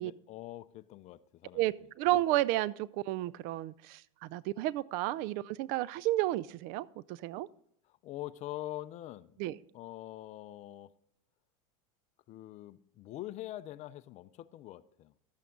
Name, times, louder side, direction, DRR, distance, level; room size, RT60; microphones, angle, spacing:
voice 1, 0.0-1.7 8.0-9.3 9.7-10.9 12.3-15.1, left 15 dB, 40° left, 0.5 m, -44 dB
voice 2, 1.5-7.5 9.4-9.6, right 15 dB, 55° right, 0.4 m, -32 dB
12.0 x 8.3 x 3.7 m
supercardioid pair, 120°, 18 cm